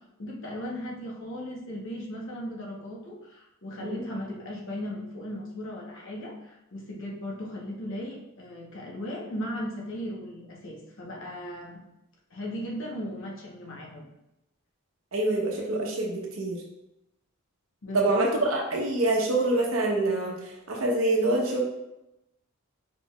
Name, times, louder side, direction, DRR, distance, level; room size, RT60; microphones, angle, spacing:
voice 1, 0.2-11.8 12.3-14.1 17.8-18.2, equal, 65° left, -2 dB, 1.1 m, -37 dB
voice 2, 15.1-16.6 17.9-21.6, right 2 dB, 70° right, -1 dB, 1.0 m, -26 dB
4.9 x 3.6 x 2.4 m, 0.89 s
head